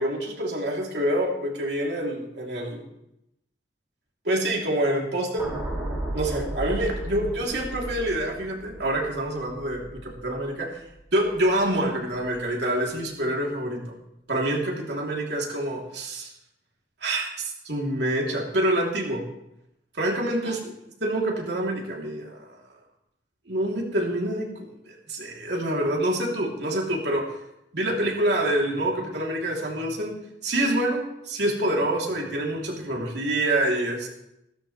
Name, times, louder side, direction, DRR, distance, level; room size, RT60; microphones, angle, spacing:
voice 1, 0.0-2.9 4.2-5.5 6.1-10.7 11.1-13.8 14.3-16.3 17.0-19.2 20.0-20.6 21.0-22.4 23.5-27.2 27.7-30.2 30.4-34.1, right 1 dB, 75° right, -1 dB, 3.0 m, -26 dB
sound 1, 5.4-11.7 12.0-12.3, right 1 dB, 15° right, 4.8 m, -35 dB
15.0 x 13.5 x 3.2 m, 0.82 s
head